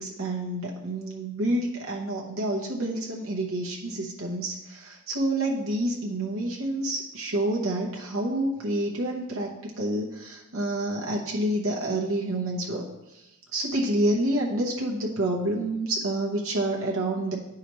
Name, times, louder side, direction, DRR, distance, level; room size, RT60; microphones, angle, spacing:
voice 1, 0.0-12.8 13.1-13.2 13.5-17.4, right 1 dB, 65° right, -2 dB, 0.9 m, -28 dB
9.6 x 4.8 x 3.1 m, 0.94 s
head